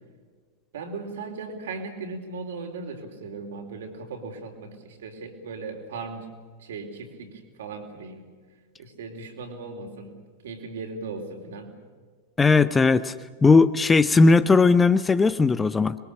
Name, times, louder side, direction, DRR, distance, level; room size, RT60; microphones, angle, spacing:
voice 1, 0.7-6.3 6.6-8.2 8.8-10.1 10.4-11.7, right 4 dB, 60° right, 4 dB, 4.0 m, -37 dB
voice 2, 12.4-13.1 13.4-16.0, left 4 dB, 15° left, 14 dB, 0.7 m, -18 dB
26.5 x 22.5 x 6.8 m, 1.6 s
figure-of-eight pair, 90°, 0 cm